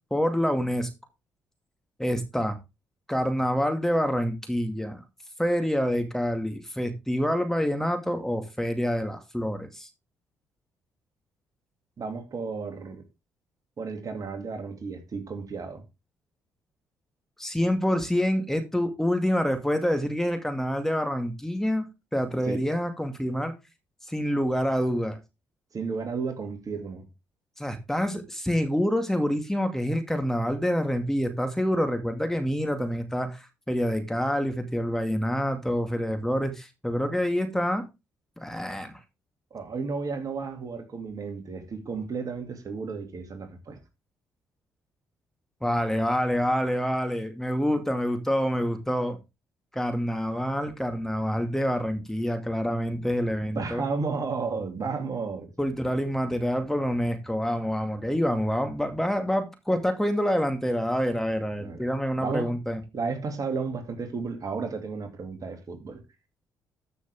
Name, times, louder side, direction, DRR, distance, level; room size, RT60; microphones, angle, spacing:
voice 1, 0.1-0.9 2.0-2.6 3.1-5.0 5.4-9.9 17.4-21.9 22.1-23.5 24.0-25.2 27.6-37.8 38.4-38.9 45.6-49.2 49.7-53.8 55.6-62.8, equal, 5° left, 2.1 m, -27 dB
voice 2, 12.0-13.0 13.8-15.8 22.5-22.6 25.7-27.1 39.5-43.8 53.5-55.5 61.6-61.9 62.2-62.5 62.9-66.0, right 4 dB, 45° right, 2.4 m, -33 dB
13.5 x 6.3 x 3.5 m
hypercardioid pair, 45°, 8 cm